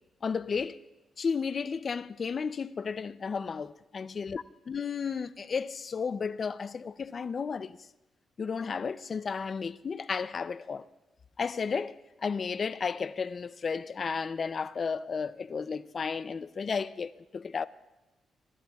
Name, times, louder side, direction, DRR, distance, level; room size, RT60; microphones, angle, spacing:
voice 1, 0.2-0.8 1.2-4.4 4.7-7.8 8.4-10.8 11.4-17.6, left 5 dB, 35° left, 0.4 m, -33 dB
25.5 x 22.5 x 2.3 m
wide cardioid pair, 160°, 0 cm